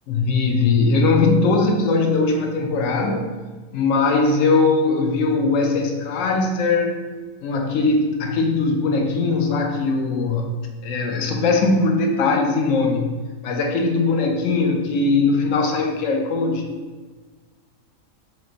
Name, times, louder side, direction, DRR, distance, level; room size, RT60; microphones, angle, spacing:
voice 1, 0.1-3.3 3.7-7.0 7.4-10.5 10.8-13.1 13.4-16.7, left 3 dB, 70° left, 3 dB, 0.9 m, -20 dB
4.1 x 2.1 x 3.8 m, 1.4 s
omnidirectional pair, 1.5 m